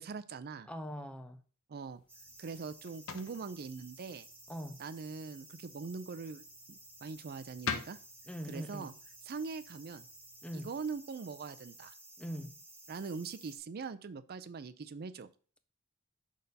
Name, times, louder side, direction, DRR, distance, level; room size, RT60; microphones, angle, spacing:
voice 1, 0.0-0.7 1.7-2.0 2.4-4.3 4.8-8.0 8.5-8.9 9.3-10.0 10.5-11.9 12.9-15.3, right 5 dB, 45° right, 0.4 m, -42 dB
voice 2, 0.7-1.4 4.5-4.8 8.3-8.9 10.4-10.7 12.2-12.5, equal, 5° left, 0.6 m, -42 dB
sound 1, 1.9-11.0, left 6 dB, 70° left, 0.8 m, -47 dB
sound 2, 2.1-13.6, right 2 dB, 10° right, 2.4 m, -55 dB
6.4 x 4.1 x 5.2 m
head